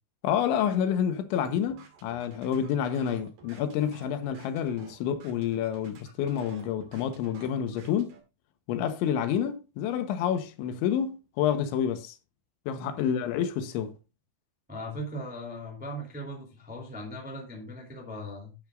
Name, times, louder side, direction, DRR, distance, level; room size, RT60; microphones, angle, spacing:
voice 1, 0.2-8.2 8.7-12.2 12.7-14.0, left 9 dB, 85° left, 3.4 m, -28 dB
sound 1, 1.3-8.2, right 5 dB, 60° right, 3.5 m, -53 dB
voice 2, 12.9-13.3 14.7-18.5, equal, 5° right, 1.9 m, -39 dB
11.5 x 10.0 x 2.5 m
omnidirectional pair, 5.3 m